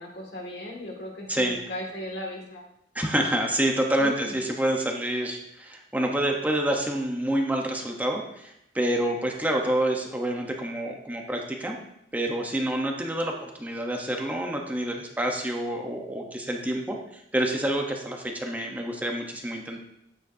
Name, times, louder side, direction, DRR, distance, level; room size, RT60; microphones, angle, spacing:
voice 1, 0.0-2.6 4.0-4.4, left 1 dB, 65° left, 0 dB, 2.2 m, -37 dB
voice 2, 2.9-11.8 12.1-19.8, right 1 dB, 10° right, 1 dB, 0.9 m, -28 dB
12.5 x 9.2 x 2.7 m, 0.79 s
head